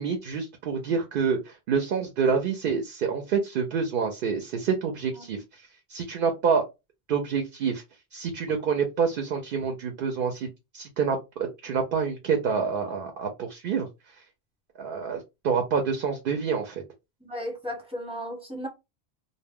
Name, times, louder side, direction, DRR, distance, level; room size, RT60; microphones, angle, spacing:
voice 1, 0.0-5.6 5.9-6.6 7.1-7.8 8.1-13.9 14.8-16.8, right 6 dB, 60° right, 0.7 m, -27 dB
voice 2, 17.2-18.7, equal, 5° right, 0.8 m, -35 dB
2.1 x 2.1 x 3.5 m
omnidirectional pair, 1.1 m